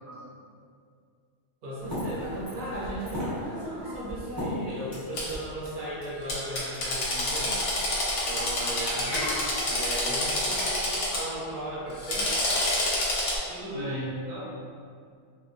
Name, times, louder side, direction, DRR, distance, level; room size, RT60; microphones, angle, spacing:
voice 1, 1.6-7.6 8.3-9.3 9.7-12.3, right 1 dB, 50° right, -8 dB, 0.8 m, -36 dB
sound 1, 1.8-5.4 5.7-5.8 6.0-6.4 6.7-6.8 7.0-7.2 7.4-7.5 7.8-9.7, left 1 dB, 25° right, 0.9 m, -36 dB
Drill, 5.2-5.3 6.3-11.2 11.9-13.4, left 1 dB, 85° left, 0.9 m, -28 dB
voice 2, 13.5-14.4, equal, 75° right, -7 dB, 0.9 m, -34 dB
2.2 x 2.1 x 2.6 m, 2.2 s
omnidirectional pair, 1.2 m